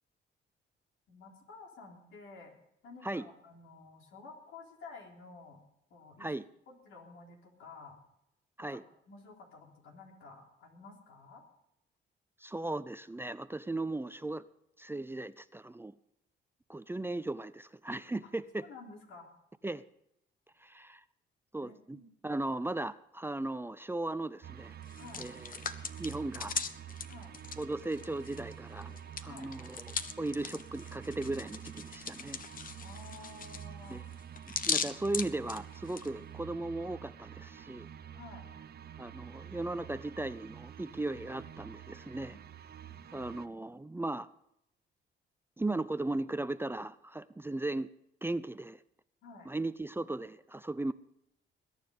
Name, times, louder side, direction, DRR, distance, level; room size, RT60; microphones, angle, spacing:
voice 1, 1.1-2.5 2.8-5.6 5.9-6.3 6.7-8.0 8.6-8.8 9.1-11.4 18.2-18.3 18.6-19.3 21.6-22.1 25.0-25.3 27.1-27.3 29.2-29.5 32.8-34.0 38.1-38.5 42.3-42.4 42.8-43.2 49.2-49.5, left 3 dB, 80° left, 0 dB, 3.7 m, -52 dB
voice 2, 12.4-14.4 14.8-15.9 16.7-18.7 19.6-19.8 20.6-21.0 21.5-24.8 25.2-25.5 26.0-26.5 27.6-28.9 29.2-32.4 33.9-34.0 34.6-37.9 39.0-42.4 43.1-44.3 45.6-47.9 48.2-48.8 49.5-50.9, right 2 dB, 10° right, 14 dB, 0.5 m, -37 dB
sound 1, 24.4-43.5, right 9 dB, 55° right, 0.9 m, -48 dB
Hands, 24.8-28.5 28.8-36.1, left 6 dB, 45° left, 1.1 m, -39 dB
21.0 x 9.8 x 5.3 m, 0.79 s
cardioid pair, 90°, 20 cm